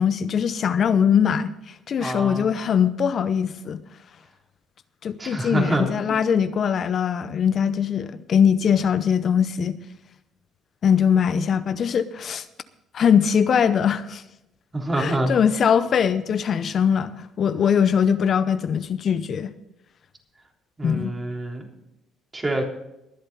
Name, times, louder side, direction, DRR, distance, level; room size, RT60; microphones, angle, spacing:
voice 1, 0.0-3.8 5.0-9.8 10.8-12.4 12.9-14.2 15.0-19.5 20.8-21.1, left 7 dB, 50° left, 0.7 m, -21 dB
voice 2, 2.0-2.5 5.2-5.9 14.7-15.3 20.8-21.7 22.3-22.6, right 1 dB, 20° right, 3.5 m, -26 dB
22.0 x 7.9 x 4.1 m
supercardioid pair, 80°, 0 cm